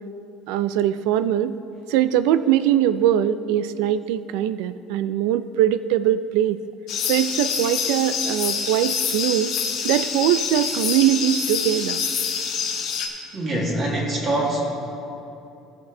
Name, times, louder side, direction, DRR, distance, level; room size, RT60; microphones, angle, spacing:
voice 1, 0.5-1.6 1.9-6.6 7.0-9.5 9.8-12.0, right 11 dB, 85° right, 13 dB, 0.4 m, -21 dB
sound 1, 6.9-13.1, left 6 dB, 50° left, 1.3 m, -26 dB
voice 2, 13.3-14.6, right 1 dB, 30° right, -2 dB, 1.8 m, -24 dB
17.0 x 6.7 x 3.7 m, 2.7 s
cardioid pair, 160°, 0 cm